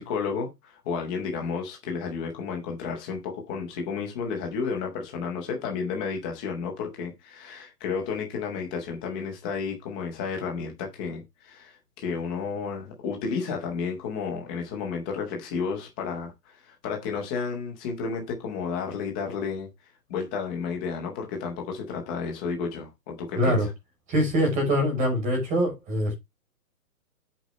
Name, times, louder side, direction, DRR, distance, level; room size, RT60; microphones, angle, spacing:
voice 1, 0.0-19.7 20.1-23.7, left 5 dB, 5° left, 0.6 m, -32 dB
voice 2, 23.4-23.7 24.1-26.1, equal, 15° right, 6.1 m, -24 dB
10.0 x 8.3 x 3.0 m
hypercardioid pair, 165°, 46 cm